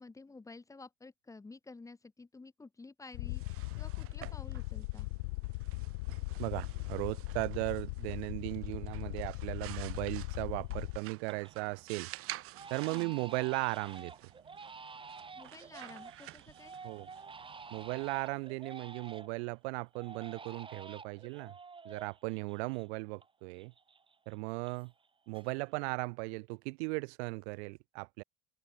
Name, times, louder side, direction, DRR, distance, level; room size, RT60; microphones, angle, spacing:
voice 1, 0.0-5.1 12.9-13.1 15.4-16.8, left 3 dB, 10° left, 2.6 m, -52 dB
sound 1, 3.1-11.0, left 26 dB, 85° left, 0.6 m, -39 dB
sound 2, 3.1-18.8, right 16 dB, 40° right, 2.4 m, -51 dB
voice 2, 6.4-12.1 12.7-14.1 16.8-17.1 17.7-21.5 21.8-23.7 24.3-24.9 25.3-28.2, right 29 dB, 75° right, 0.7 m, -37 dB
Crying sobbing, 9.4-9.5 9.9-10.4 10.8-11.6 11.9-12.1 12.5-19.5 19.9-23.3 23.5-25.1 25.3-25.9, right 5 dB, 15° right, 7.3 m, -50 dB
cardioid pair, 155°, 33 cm